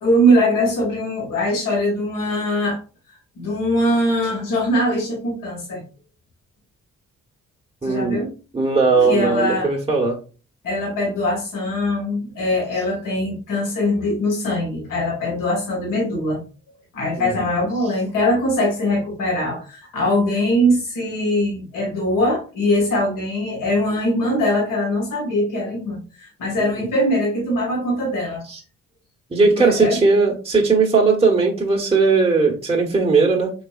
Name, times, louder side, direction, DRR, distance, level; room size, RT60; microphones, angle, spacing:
voice 1, 0.0-2.8 3.4-5.8 7.8-8.3 9.0-9.7 10.6-16.4 16.9-28.4 29.6-30.0, left 1 dB, 75° left, -2 dB, 1.8 m, -21 dB
voice 2, 7.8-8.2 8.5-10.2 17.2-17.3 26.6-26.9 28.5-28.6 29.3-33.5, right 4 dB, 20° right, 0 dB, 1.1 m, -18 dB
4.1 x 3.1 x 2.4 m, 0.35 s
supercardioid pair, 45°, 32 cm